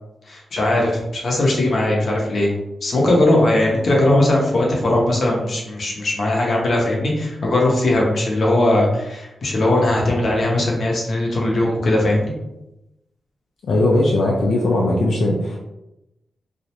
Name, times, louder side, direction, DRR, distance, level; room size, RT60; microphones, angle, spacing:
voice 1, 0.3-2.5 2.8-12.3, left 1 dB, 45° left, -3 dB, 0.7 m, -19 dB
voice 2, 13.7-15.6, left 2 dB, 85° left, -2 dB, 0.3 m, -18 dB
2.4 x 2.0 x 2.8 m, 0.92 s
wide cardioid pair, 155°, 0 cm